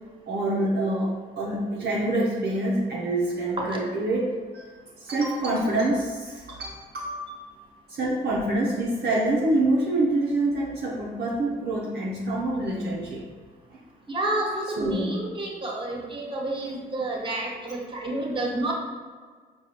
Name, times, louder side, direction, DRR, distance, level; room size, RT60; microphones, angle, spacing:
voice 1, 0.3-4.7 5.0-7.2 7.9-13.3 13.7-13.8 14.8-15.2, right 1 dB, 55° right, -4 dB, 0.6 m, -26 dB
voice 2, 14.1-18.7, right 1 dB, 25° right, -2 dB, 1.1 m, -29 dB
4.8 x 2.3 x 3.0 m, 1.5 s
supercardioid pair, 45°, 20 cm